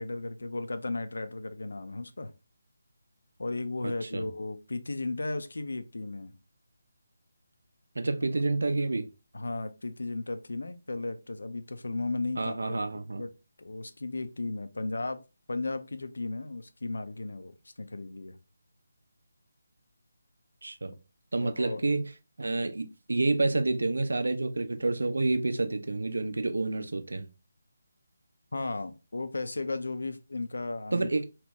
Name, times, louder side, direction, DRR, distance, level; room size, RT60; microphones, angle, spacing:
voice 1, 0.0-2.3 3.4-6.3 9.3-12.8 13.2-13.3 13.6-15.2 15.5-18.4 21.4-21.9 28.5-31.1, left 2 dB, 65° left, 0.4 m, -35 dB
voice 2, 3.8-4.3 8.0-9.1 12.4-13.2 20.6-20.9 21.3-22.0 22.4-27.3 30.9-31.2, right 2 dB, 65° right, 0.4 m, -29 dB
2.8 x 2.1 x 3.4 m
figure-of-eight pair, 150°, 0 cm